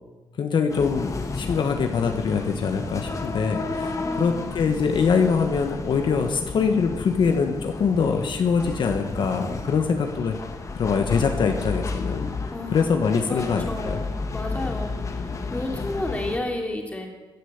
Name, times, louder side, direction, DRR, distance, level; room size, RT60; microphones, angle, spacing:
voice 1, 0.4-10.4 10.7-12.3 12.7-14.0 14.5-14.7, left 5 dB, 65° left, 5 dB, 1.4 m, -24 dB
sound 1, 0.7-16.4, left 3 dB, 35° left, 1.5 m, -32 dB
voice 2, 4.0-4.5 12.5-14.9 15.5-17.1, left 1 dB, 15° left, 1 dB, 2.9 m, -32 dB
15.0 x 10.5 x 8.2 m, 1.2 s
wide cardioid pair, 155°, 9 cm